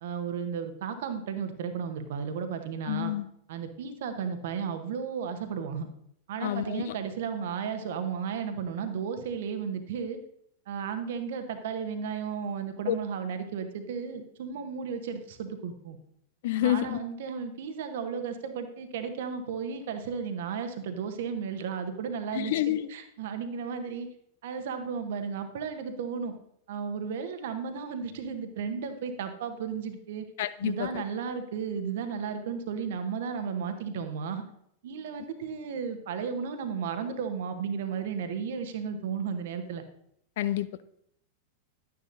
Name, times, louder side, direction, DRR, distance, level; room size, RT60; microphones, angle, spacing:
voice 1, 0.0-3.1 3.5-5.9 6.3-10.2 10.7-16.0 16.6-22.6 22.9-24.1 24.4-26.3 26.7-30.2 30.6-34.4 34.8-39.8, right 6 dB, 55° right, 8 dB, 1.0 m, -34 dB
voice 2, 2.9-3.3 6.4-6.9 12.9-13.0 16.4-17.0 22.3-22.9 30.4-31.0 40.4-40.8, left 13 dB, 55° left, 14 dB, 0.4 m, -28 dB
11.5 x 9.5 x 2.6 m, 0.72 s
figure-of-eight pair, 90°, 0 cm